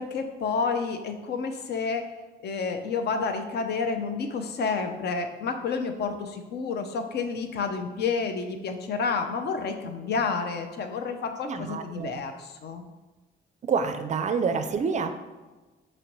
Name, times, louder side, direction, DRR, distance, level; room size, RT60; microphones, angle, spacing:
voice 1, 0.0-2.0 2.4-12.8, left 5 dB, 55° left, 6 dB, 0.5 m, -30 dB
voice 2, 11.5-12.2 13.7-15.2, right 5 dB, 35° right, 9 dB, 0.4 m, -27 dB
5.0 x 3.0 x 3.0 m, 1.2 s
cardioid pair, 90°, 20 cm